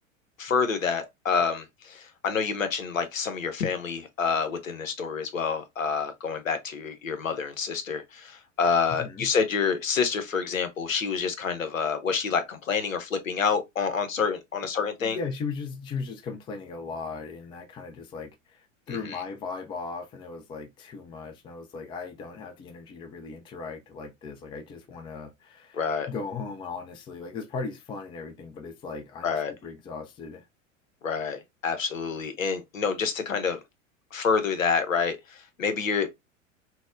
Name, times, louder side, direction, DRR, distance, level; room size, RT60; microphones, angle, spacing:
voice 1, 0.4-15.2 18.9-19.0 25.7-26.1 29.2-29.5 31.0-33.6 34.1-36.1, left 5 dB, 85° left, 0.7 m, -28 dB
voice 2, 8.9-9.3 14.6-14.7 15.0-25.8 26.1-30.5, left 4 dB, 15° left, 0.3 m, -37 dB
4.0 x 2.1 x 2.4 m
figure-of-eight pair, 90°, 39 cm